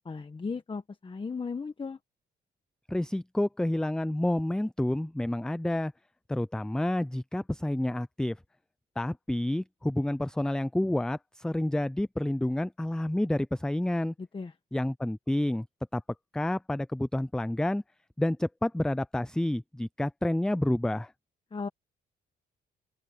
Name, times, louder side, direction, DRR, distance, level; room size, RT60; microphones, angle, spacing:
voice 1, 0.0-2.0 14.2-14.5 21.5-21.7, left 4 dB, 25° left, 1.3 m, -36 dB
voice 2, 2.9-5.9 6.3-8.4 9.0-14.1 14.7-15.6 15.9-16.0 16.3-17.8 18.2-21.1, left 1 dB, 5° left, 0.5 m, -29 dB
open air
cardioid pair, 90°, 20 cm